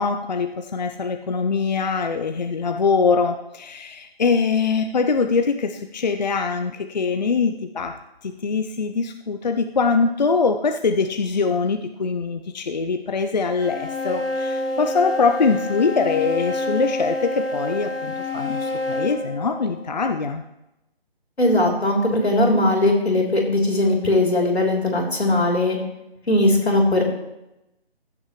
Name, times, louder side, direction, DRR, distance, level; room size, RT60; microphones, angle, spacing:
voice 1, 0.0-8.0 8.2-20.4, left 4 dB, 45° left, 6 dB, 0.6 m, -23 dB
sound 1, 13.6-20.1, left 2 dB, 30° right, 3.6 m, -28 dB
voice 2, 21.4-25.8 26.3-27.0, left 1 dB, 90° left, -1 dB, 3.4 m, -19 dB
15.5 x 7.2 x 3.1 m, 0.91 s
figure-of-eight pair, 160°, 31 cm